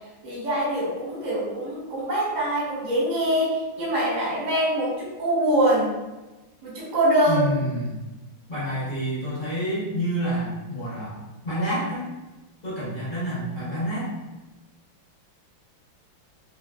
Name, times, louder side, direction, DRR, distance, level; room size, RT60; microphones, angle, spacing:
voice 1, 0.2-5.9 6.6-7.5, right 1 dB, 35° right, -6 dB, 0.8 m, -24 dB
voice 2, 7.3-8.0 8.5-12.1 12.6-14.1, equal, 35° left, -11 dB, 0.9 m, -28 dB
3.2 x 2.6 x 2.3 m, 1.1 s
omnidirectional pair, 2.2 m